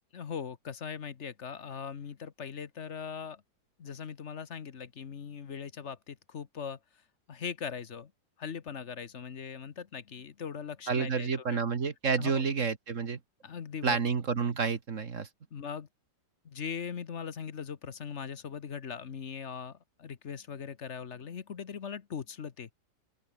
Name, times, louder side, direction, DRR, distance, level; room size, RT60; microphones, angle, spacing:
voice 1, 0.1-3.4 3.8-6.8 7.3-8.1 8.4-11.6 12.2-12.5 13.4-14.1 15.5-15.9 16.4-22.7, left 7 dB, 45° left, 1.2 m, -40 dB
voice 2, 10.9-13.2 13.8-15.3, right 5 dB, 40° right, 1.8 m, -29 dB
open air
omnidirectional pair, 2.1 m